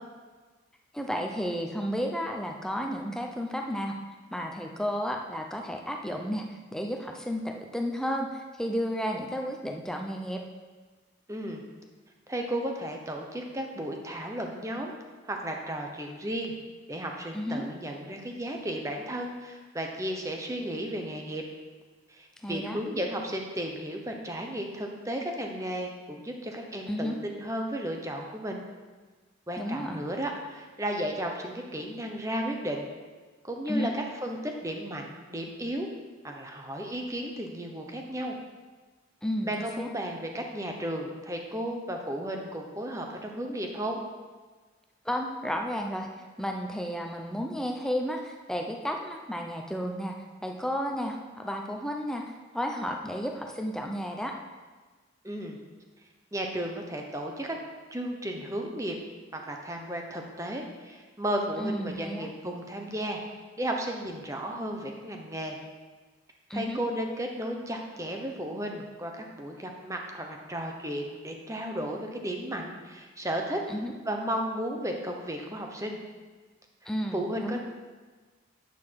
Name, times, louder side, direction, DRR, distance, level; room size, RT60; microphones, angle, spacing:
voice 1, 0.9-4.0 4.3-10.4 17.3-17.7 22.4-22.8 26.9-27.2 29.6-30.0 33.7-33.9 39.2-39.9 45.0-46.1 46.4-50.2 50.4-54.4 61.6-62.3 66.5-66.8 73.7-73.9 76.9-77.6, equal, 5° left, 2 dB, 0.6 m, -32 dB
voice 2, 11.3-11.6 12.3-14.9 15.2-16.5 16.9-21.4 22.1-28.6 29.5-32.9 33.4-35.9 36.2-38.4 39.4-44.0 55.2-55.6 56.3-57.6 57.9-59.0 59.3-65.6 66.5-73.6 74.0-76.0 77.1-77.6, right 1 dB, 15° right, 2 dB, 1.0 m, -34 dB
9.5 x 8.1 x 4.7 m, 1.4 s
head